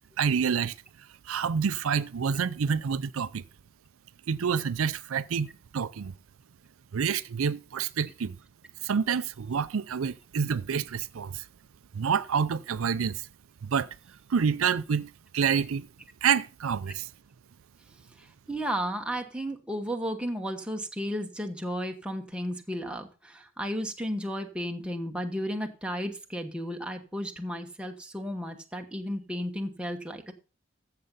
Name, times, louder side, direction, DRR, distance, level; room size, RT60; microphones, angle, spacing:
voice 1, 0.2-0.7 1.3-3.4 4.3-6.1 6.9-8.4 8.8-11.4 11.9-13.2 13.6-13.9 14.3-15.9 16.2-17.1, right 6 dB, 80° right, 0.5 m, -28 dB
voice 2, 18.2-30.3, equal, 5° right, 1.1 m, -33 dB
14.5 x 6.8 x 3.9 m
head